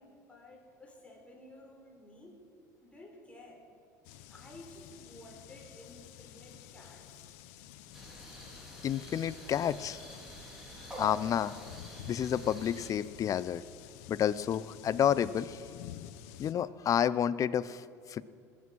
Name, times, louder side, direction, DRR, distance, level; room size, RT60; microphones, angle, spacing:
voice 1, 0.0-2.4 2.8-3.6 4.3-7.3, left 1 dB, 15° left, 0 dB, 4.4 m, -53 dB
sound 1, 4.0-16.5, left 12 dB, 70° left, 0.8 m, -50 dB
sound 2, 7.9-12.9, equal, 5° right, 3.8 m, -47 dB
voice 2, 8.8-10.0 11.0-11.5 12.1-13.6 14.1-15.6 16.4-18.2, left 9 dB, 40° left, 18 dB, 0.5 m, -30 dB
20.0 x 8.4 x 6.1 m, 2.4 s
hypercardioid pair, 80°, 9 cm